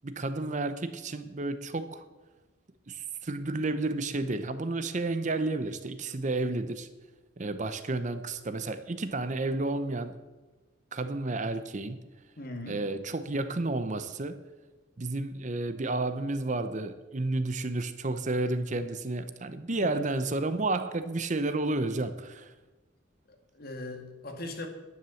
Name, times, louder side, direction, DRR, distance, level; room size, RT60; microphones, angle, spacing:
voice 1, 0.0-2.0 2.9-6.9 7.4-10.2 10.9-12.0 12.7-14.4 15.0-22.5, right 2 dB, 40° right, 11 dB, 0.7 m, -31 dB
voice 2, 12.4-12.8 19.8-19.9 23.3-24.7, left 1 dB, 50° left, 4 dB, 2.0 m, -40 dB
11.0 x 9.8 x 7.0 m, 1.2 s
head